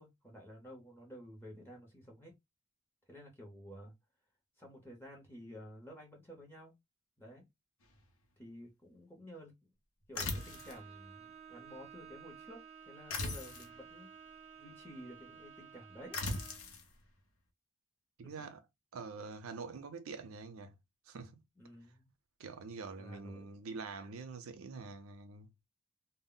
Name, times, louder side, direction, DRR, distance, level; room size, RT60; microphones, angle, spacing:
voice 1, 0.0-2.3 3.1-3.9 4.6-6.7 7.2-7.4 8.4-9.5 10.1-14.1 14.6-16.2 18.2-18.3 21.6-22.1 23.0-23.6, equal, 10° left, 0.8 m, -52 dB
sound 1, 10.1-10.8 13.1-13.7 16.1-16.8, left 2 dB, 80° left, 0.7 m, -38 dB
Bowed string instrument, 10.2-16.7, right 7 dB, 30° right, 0.5 m, -54 dB
voice 2, 18.2-18.6 18.9-20.7 21.1-21.4 22.4-25.5, right 4 dB, 85° right, 0.5 m, -45 dB
2.1 x 2.0 x 3.7 m
head